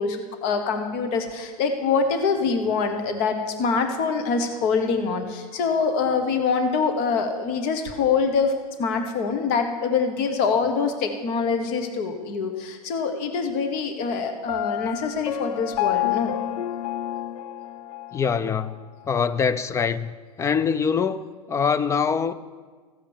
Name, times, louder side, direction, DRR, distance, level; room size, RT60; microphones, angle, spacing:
voice 1, 0.0-8.5 8.8-16.3, left 5 dB, 50° left, 1.3 m, -24 dB
Piano, 14.5-18.3, left 13 dB, 75° left, 0.5 m, -28 dB
voice 2, 18.1-18.8 19.1-20.1 20.4-22.3, left 6 dB, 15° left, 0.3 m, -24 dB
15.0 x 5.1 x 7.1 m
hypercardioid pair, 115°, 20 cm